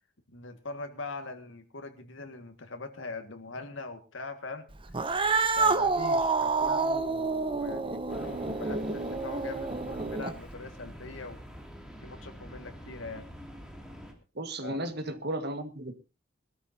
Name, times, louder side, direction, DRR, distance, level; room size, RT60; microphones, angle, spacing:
voice 1, 0.3-4.6 5.6-11.4 12.0-13.2 14.6-14.8, left 3 dB, 90° left, 6 dB, 1.9 m, -42 dB
Cat, 4.9-10.5, right 4 dB, 25° right, 0.9 m, -28 dB
sound 1, 8.1-14.1, equal, 5° right, 2.6 m, -46 dB
voice 2, 14.4-15.9, right 1 dB, 55° right, 8 dB, 1.8 m, -34 dB
21.5 x 13.0 x 2.8 m, 0.30 s
head